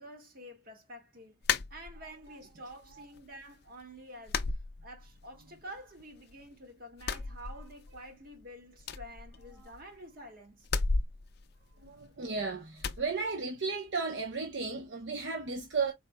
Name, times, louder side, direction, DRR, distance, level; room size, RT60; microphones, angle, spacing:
voice 1, 0.0-10.7, equal, 50° right, 1.8 m, -49 dB
sound 1, 1.4-2.3 2.7-3.4 3.7-3.8 4.3-5.4 5.7-6.5 6.9-8.1 8.4-8.5 8.8-10.0 10.6-12.3 12.8-13.1, left 4 dB, 55° left, 0.5 m, -35 dB
voice 2, 11.7-15.9, right 4 dB, 70° right, 0.9 m, -35 dB
4.6 x 4.1 x 2.2 m
head